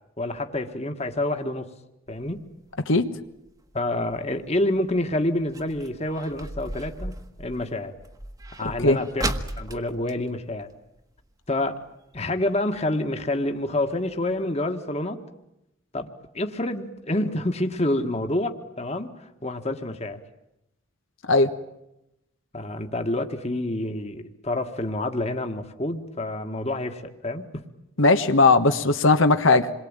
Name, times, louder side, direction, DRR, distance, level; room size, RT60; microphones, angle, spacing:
voice 1, 0.2-1.7 2.1-2.5 3.7-8.0 8.6-10.7 11.5-11.8 12.1-15.2 15.9-16.1 16.3-20.2 22.5-27.6, left 1 dB, 30° left, 6 dB, 1.8 m, -28 dB
sound 1, 2.1-11.3 11.6-11.7 12.0-12.4 12.9-13.0 13.5-13.6 13.9-14.0 14.4-14.5, right 1 dB, 15° right, 1.4 m, -37 dB
voice 2, 28.0-29.7, left 3 dB, 70° left, 8 dB, 1.4 m, -18 dB
28.0 x 22.5 x 9.0 m, 0.87 s
head